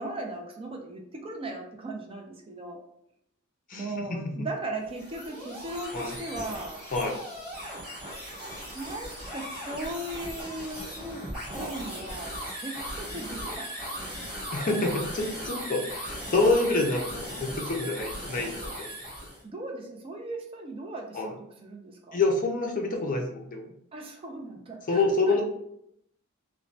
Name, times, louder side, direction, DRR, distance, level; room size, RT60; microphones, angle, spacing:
voice 1, 0.0-2.8 3.7-6.8 8.7-10.9 11.4-13.7 19.4-21.2 21.6-22.2 23.9-25.4, right 2 dB, 25° right, 2 dB, 0.4 m, -37 dB
voice 2, 3.7-4.5 5.9-6.1 6.9-7.2 14.5-18.9 21.1-21.3 22.1-23.7 24.9-25.4, left 3 dB, 40° left, 2 dB, 0.5 m, -27 dB
sound 1, 4.8-19.4, equal, 5° right, 1.4 m, -38 dB
3.0 x 2.1 x 2.6 m, 0.76 s
head